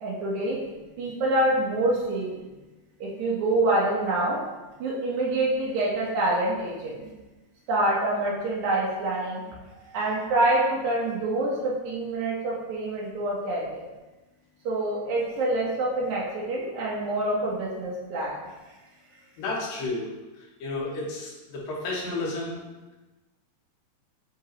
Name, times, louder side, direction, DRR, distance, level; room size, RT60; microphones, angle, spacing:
voice 1, 0.0-0.6 1.0-2.4 3.0-4.5 4.8-7.1 7.7-9.4 9.9-13.8 14.6-18.4, right 2 dB, 85° right, -5 dB, 1.6 m, -26 dB
voice 2, 19.4-20.1 20.6-22.6, left 2 dB, 65° left, -4 dB, 2.7 m, -31 dB
9.9 x 3.9 x 2.9 m, 1.1 s
omnidirectional pair, 4.8 m